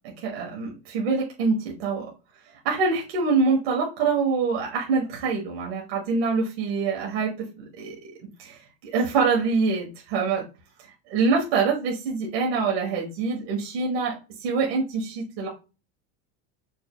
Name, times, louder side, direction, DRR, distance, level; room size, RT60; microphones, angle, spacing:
voice 1, 0.2-2.1 2.6-7.5 7.8-8.1 8.4-10.4 11.1-15.5, right 4 dB, 80° right, -1 dB, 1.3 m, -25 dB
4.8 x 2.7 x 2.3 m, 0.31 s
supercardioid pair, 170°, 31 cm